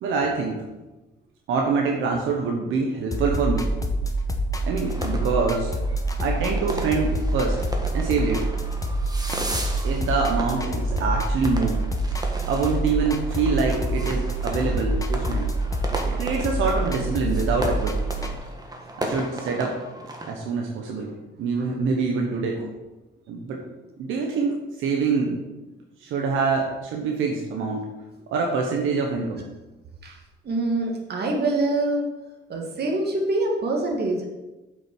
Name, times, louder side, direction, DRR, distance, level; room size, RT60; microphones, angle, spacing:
voice 1, 0.0-0.7 1.5-3.7 4.6-5.7 6.2-7.6 7.9-8.5 9.8-11.8 12.5-15.5 16.1-18.0 19.0-19.8 20.3-21.1 21.4-22.6 23.3-23.6 24.0-25.4 26.0-27.9 28.3-29.4, right 4 dB, 85° right, 1 dB, 1.3 m, -25 dB
sound 1, 3.1-18.3, right 1 dB, 15° left, 1.2 m, -26 dB
sound 2, 4.9-20.3, right 1 dB, 20° right, 1.7 m, -36 dB
voice 2, 30.4-32.1 32.5-34.3, right 2 dB, 55° right, 0 dB, 2.3 m, -25 dB
7.5 x 6.3 x 6.2 m, 1.1 s
cardioid pair, 90°, 20 cm